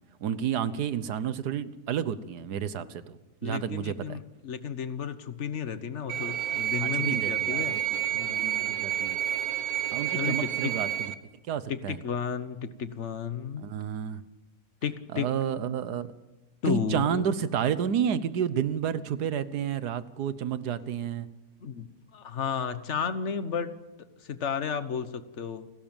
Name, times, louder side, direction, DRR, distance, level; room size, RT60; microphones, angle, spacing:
voice 1, 0.2-4.2 6.8-7.8 8.1-9.2 9.9-11.1 11.5-12.0 13.6-14.2 15.1-16.1 16.7-21.3, right 8 dB, 90° right, 15 dB, 1.5 m, -30 dB
voice 2, 3.4-7.8 8.1-8.8 10.1-10.7 11.7-13.7 14.8-15.3 16.6-17.2 21.6-23.7 24.2-25.7, left 7 dB, 50° left, 12 dB, 1.4 m, -33 dB
sound 1, 6.1-11.1, right 12 dB, 70° right, 1.5 m, -29 dB
30.0 x 12.5 x 9.0 m, 1.2 s
omnidirectional pair, 1.7 m